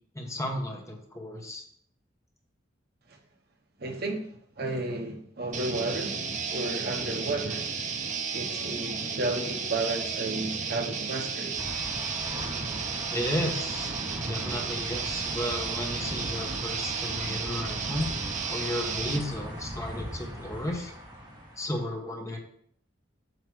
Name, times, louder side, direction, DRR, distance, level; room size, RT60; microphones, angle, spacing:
voice 1, 0.1-1.6 13.1-18.1 18.5-20.9 21.6-22.4, left 1 dB, 15° left, 1 dB, 1.1 m, -34 dB
voice 2, 3.8-4.3 4.6-6.2 6.5-7.7 8.3-11.6, right 2 dB, 60° right, 2 dB, 1.1 m, -32 dB
sound 1, 5.5-19.2, right 5 dB, 40° right, 0.7 m, -33 dB
sound 2, 11.6-21.8, equal, 25° right, 1.7 m, -39 dB
8.0 x 3.0 x 6.1 m, 0.66 s
head